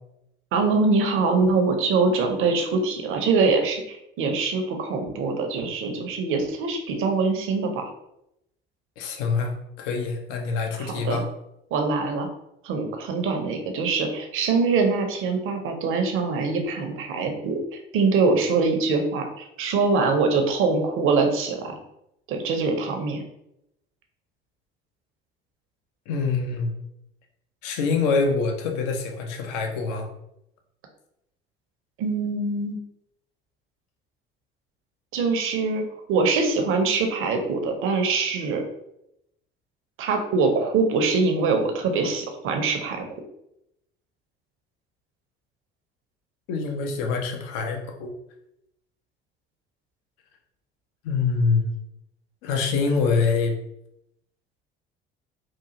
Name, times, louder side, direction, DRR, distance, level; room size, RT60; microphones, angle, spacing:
voice 1, 0.5-7.8 10.8-11.2 11.7-12.3 12.6-17.6 17.9-21.8 22.3-23.2 32.0-32.8 35.1-35.8 36.1-38.6 40.0-43.1, right 4 dB, 45° right, 4 dB, 0.6 m, -23 dB
voice 2, 9.0-11.3 26.1-26.7 27.6-30.1 46.5-48.1 51.0-51.7 52.4-53.5, left 4 dB, 60° left, 3 dB, 0.6 m, -25 dB
3.0 x 2.3 x 2.8 m, 0.81 s
figure-of-eight pair, 55°, 29 cm